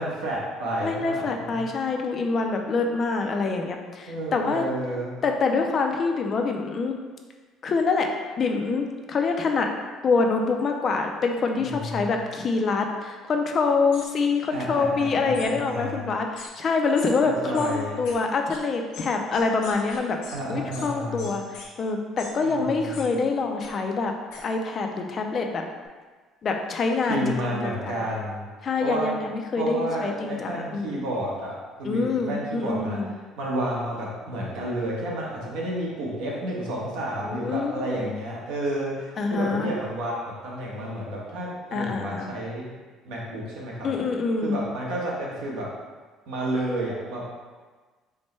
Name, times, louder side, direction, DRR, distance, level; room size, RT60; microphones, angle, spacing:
voice 1, 0.0-1.7 4.1-5.2 11.6-12.2 14.5-16.1 17.2-18.0 20.3-21.3 22.4-23.1 27.1-28.4 28.8-29.1 29.6-33.0 33.4-42.7 43.0-43.9 44.4-45.7 46.3-47.3, right 1 dB, 85° right, -4 dB, 1.1 m, -31 dB
voice 2, 0.8-4.6 5.2-6.9 7.6-8.1 8.4-9.7 10.0-20.2 20.5-21.4 21.8-24.1 24.4-25.6 26.4-28.0 28.6-31.0 31.8-33.1 37.2-38.1 39.2-39.7 41.7-42.3 43.8-44.6, left 4 dB, 30° left, 3 dB, 0.4 m, -25 dB
sound 1, 13.9-14.1 15.3-15.5 16.4-16.5 17.0-17.1 17.5-17.7 18.1-18.2 18.5-18.6 18.9-20.4 20.7-20.9 21.2-21.7 22.2-22.3 22.9-23.1 23.6-23.7 24.3-24.4, left 4 dB, 80° left, 0.8 m, -41 dB
4.4 x 2.1 x 4.2 m, 1.4 s
cardioid pair, 165°, 0 cm